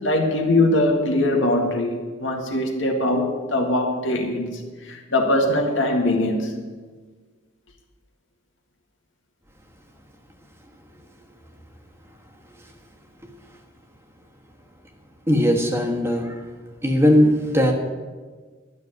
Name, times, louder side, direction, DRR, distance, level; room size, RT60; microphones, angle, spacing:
voice 1, 0.0-6.6, left 1 dB, 75° left, 2 dB, 2.0 m, -22 dB
voice 2, 15.3-16.3 16.8-17.7, equal, 15° right, 1 dB, 1.4 m, -18 dB
12.0 x 6.7 x 9.3 m, 1.4 s
head